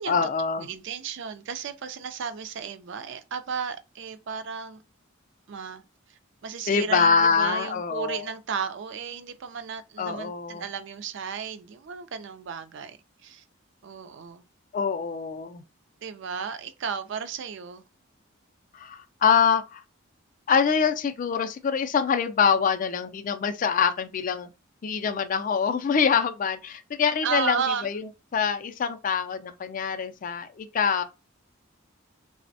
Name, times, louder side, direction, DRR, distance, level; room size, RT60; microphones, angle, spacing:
voice 1, 0.1-0.7 6.7-8.2 10.0-10.6 14.7-15.6 18.7-19.8 20.5-24.5 24.8-27.6 27.8-28.0 28.3-31.0, left 6 dB, 40° left, 0.3 m, -24 dB
voice 2, 0.6-4.8 5.5-5.8 6.1-13.4 13.8-14.4 16.0-17.8 27.2-27.9, right 6 dB, 55° right, 0.4 m, -34 dB
3.3 x 2.1 x 2.6 m
head